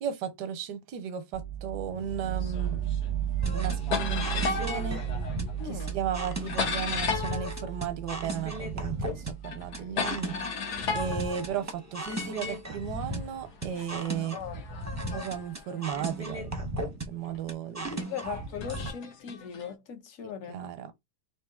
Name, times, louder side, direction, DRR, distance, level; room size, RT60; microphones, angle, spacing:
voice 1, 0.0-2.8 3.5-5.0 5.6-10.3 10.9-14.4 15.1-18.0 20.5-20.9, right 8 dB, 90° right, 1.3 m, -35 dB
sound 1, 1.3-11.1, right 10 dB, 70° right, 0.7 m, -35 dB
sound 2, 2.4-3.1 3.4-8.7 9.0-12.3 13.0-16.5 17.2-17.4 18.3-19.7, left 5 dB, 75° left, 1.5 m, -36 dB
sound 3, 3.4-18.9, right 1 dB, 20° right, 0.4 m, -36 dB
voice 2, 5.6-6.0 14.0-15.0 17.9-20.6, left 8 dB, 60° left, 1.1 m, -40 dB
3.6 x 2.8 x 3.5 m
omnidirectional pair, 1.8 m